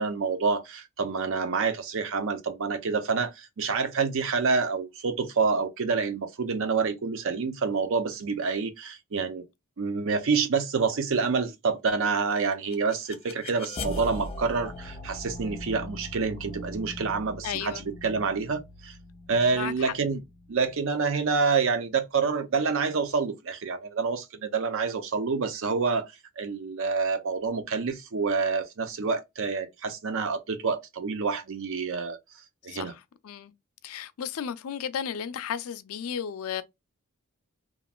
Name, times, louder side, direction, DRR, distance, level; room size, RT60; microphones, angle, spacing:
voice 1, 0.0-9.4 9.8-18.9 19.3-20.2 20.5-32.2 32.6-32.9, right 5 dB, 65° right, 0.5 m, -27 dB
sound 1, 12.3-21.2, left 2 dB, 30° left, 0.5 m, -40 dB
voice 2, 17.4-17.8 19.5-19.9 32.7-33.5 33.8-36.6, left 8 dB, 80° left, 0.4 m, -34 dB
3.0 x 2.4 x 2.2 m
head